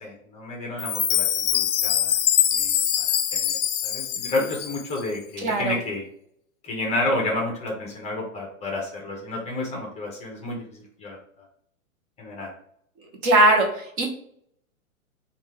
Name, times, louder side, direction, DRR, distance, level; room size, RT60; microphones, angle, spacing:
voice 1, 0.0-2.1 2.5-3.6 3.8-6.0 6.6-11.2 12.2-12.5, left 2 dB, 15° left, -1 dB, 0.8 m, -30 dB
Chime, 0.8-5.0, left 10 dB, 55° left, 0.6 m, -24 dB
voice 2, 5.4-5.7 13.2-14.1, right 1 dB, 30° right, 1 dB, 0.9 m, -19 dB
5.3 x 2.5 x 3.3 m, 0.67 s
hypercardioid pair, 135°, 41 cm